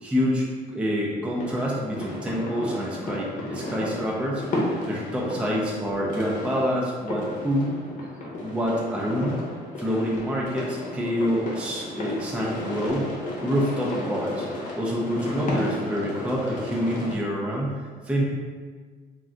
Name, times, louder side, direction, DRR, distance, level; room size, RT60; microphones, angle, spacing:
voice 1, 0.0-7.8 8.4-9.4 9.8-13.1 13.4-14.5 14.8-18.2, equal, 5° right, -3 dB, 0.4 m, -27 dB
sound 1, 1.4-17.1, left 1 dB, 50° left, 0.8 m, -33 dB
2.4 x 2.2 x 3.7 m, 1.5 s
cardioid pair, 110°, 17 cm